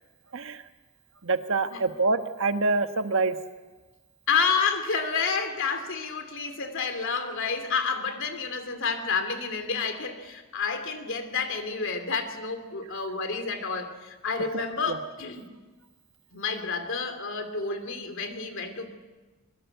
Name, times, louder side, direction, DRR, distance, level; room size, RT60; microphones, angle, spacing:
voice 1, 0.3-0.6 1.2-3.4 14.9-15.0, right 3 dB, 60° right, 8 dB, 1.3 m, -26 dB
voice 2, 4.3-15.4 16.3-18.9, left 5 dB, 60° left, 8 dB, 2.9 m, -29 dB
23.5 x 23.0 x 8.0 m, 1.3 s
head